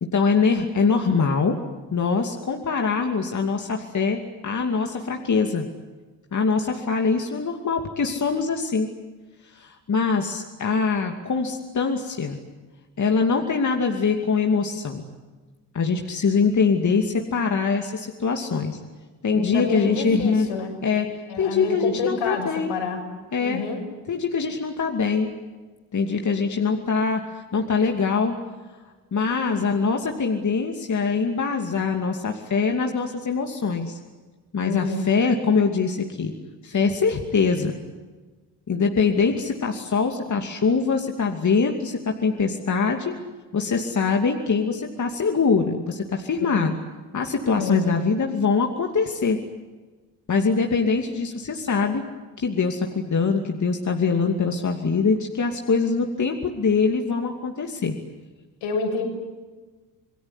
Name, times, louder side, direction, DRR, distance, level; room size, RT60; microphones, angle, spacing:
voice 1, 0.0-1.6 1.9-5.7 6.3-8.9 9.5-12.4 13.0-15.0 15.7-18.8 19.2-20.5 20.8-21.1 21.4-22.8 23.3-23.6 24.1-25.3 25.9-28.4 29.1-34.0 34.5-36.3 36.6-37.8 38.7-43.1 43.5-46.7 47.1-49.4 50.3-52.0 52.4-57.9, left 5 dB, 35° left, 3 dB, 2.6 m, -23 dB
voice 2, 19.2-20.8 21.3-23.1 23.4-23.8 34.6-35.1 46.5-46.8 47.5-48.2 58.6-59.0, left 4 dB, 70° left, 2 dB, 7.1 m, -28 dB
27.5 x 19.5 x 9.8 m, 1.3 s
supercardioid pair, 65°, 48 cm